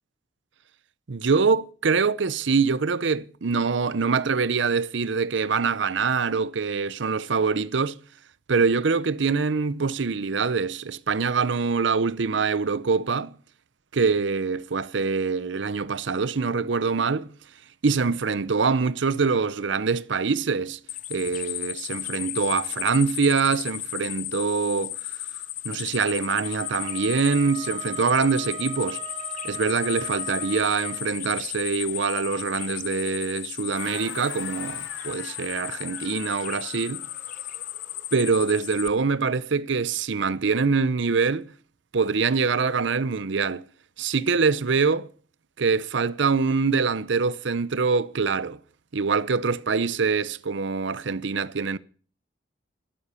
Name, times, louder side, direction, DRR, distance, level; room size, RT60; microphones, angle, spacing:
voice 1, 1.1-8.0 8.5-13.3 13.9-17.3 17.8-20.8 21.1-25.3 25.6-29.0 29.4-37.0 38.1-41.5 41.9-43.6 44.0-45.1 45.6-48.6 48.9-51.8, right 5 dB, 70° right, 0.6 m, -24 dB
sound 1, 20.9-38.9, left 14 dB, 40° left, 0.6 m, -35 dB
Wind instrument woodwind instrument, 26.4-31.1, right 10 dB, 25° right, 3.5 m, -39 dB
sound 2, 33.7-38.2, left 4 dB, 75° left, 6.2 m, -43 dB
13.0 x 12.0 x 5.6 m
head